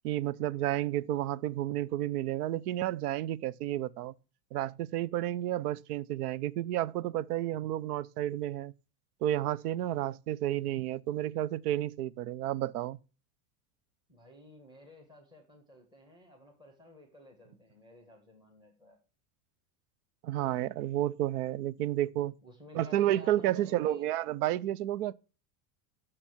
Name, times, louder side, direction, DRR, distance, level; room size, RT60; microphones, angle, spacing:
voice 1, 0.0-4.1 4.5-8.7 9.2-13.0 20.2-22.3 22.7-25.1, right 13 dB, 85° right, 0.6 m, -31 dB
voice 2, 14.1-19.0 22.4-24.1, left 2 dB, 10° right, 1.5 m, -54 dB
7.2 x 6.7 x 7.0 m
supercardioid pair, 165°, 45 cm